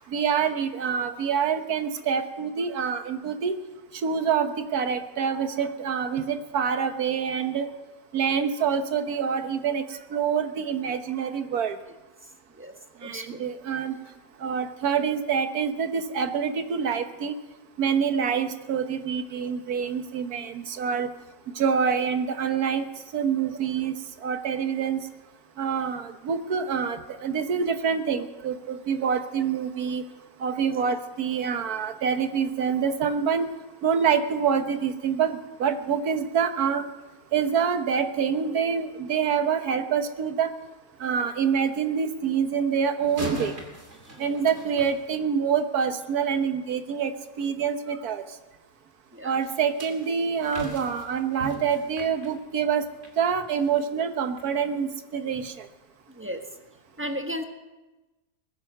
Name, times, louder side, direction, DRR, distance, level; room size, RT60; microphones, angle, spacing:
voice 1, 0.1-3.5 3.9-7.7 8.1-11.8 13.0-14.0 14.4-17.3 17.8-21.1 21.5-22.8 23.1-25.0 25.6-30.0 30.4-33.5 33.8-36.8 37.3-40.5 41.0-43.6 44.2-47.1 47.4-48.2 49.2-52.9 53.2-55.7, right 7 dB, 80° right, 8 dB, 1.6 m, -26 dB
voice 2, 13.0-13.4 30.5-30.7 44.1-44.4 49.1-49.3 56.1-56.4 57.0-57.4, equal, 10° right, 4 dB, 1.3 m, -35 dB
sound 1, 43.0-45.6 49.4-53.2 53.6-53.8 54.4-54.5, right 3 dB, 45° right, 2.8 m, -40 dB
20.5 x 10.5 x 6.6 m, 1.1 s
omnidirectional pair, 1.6 m